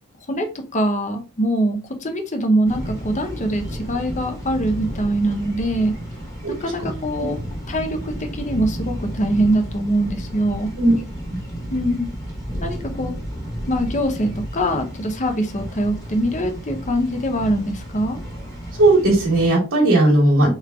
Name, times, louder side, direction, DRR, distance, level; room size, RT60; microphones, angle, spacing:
voice 1, 0.3-5.9 6.6-7.4 7.7-10.7 11.7-12.1 12.6-13.1 13.7-18.2 20.1-20.5, right 1 dB, 35° left, 0.8 m, -23 dB
sound 1, 2.6-19.5, equal, 15° left, 1.3 m, -32 dB
voice 2, 18.8-20.5, right 2 dB, 60° right, 1.3 m, -16 dB
3.6 x 3.2 x 3.6 m
head